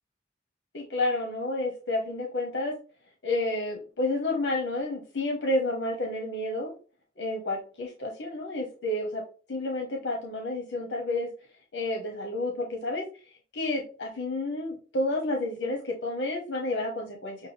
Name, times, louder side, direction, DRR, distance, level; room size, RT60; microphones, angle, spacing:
voice 1, 0.7-2.7 3.2-6.7 7.2-9.2 9.5-11.3 11.7-13.0 13.5-17.5, left 2 dB, 75° left, 2 dB, 0.8 m, -30 dB
6.3 x 2.2 x 3.3 m, 0.37 s
head